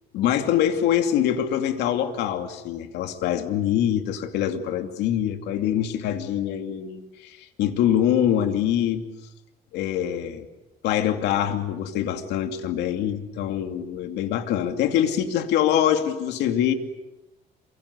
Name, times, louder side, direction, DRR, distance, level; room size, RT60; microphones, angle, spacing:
voice 1, 0.1-9.0 9.7-10.5 10.8-16.7, left 10 dB, 85° left, 7 dB, 2.6 m, -24 dB
27.5 x 25.0 x 8.2 m, 0.98 s
cardioid pair, 110°, 17 cm